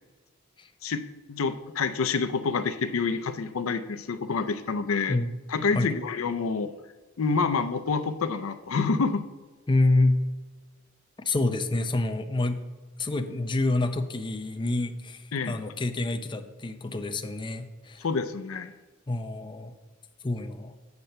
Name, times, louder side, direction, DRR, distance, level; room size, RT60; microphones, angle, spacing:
voice 1, 1.3-5.2 5.5-6.7 7.2-9.3 15.3-15.6 18.0-18.7, left 4 dB, 80° left, 10 dB, 0.5 m, -27 dB
voice 2, 9.7-10.2 11.3-12.6 13.0-18.0 19.1-19.7 20.2-20.7, left 2 dB, 25° left, 7 dB, 0.5 m, -27 dB
8.2 x 4.3 x 6.7 m, 1.3 s
head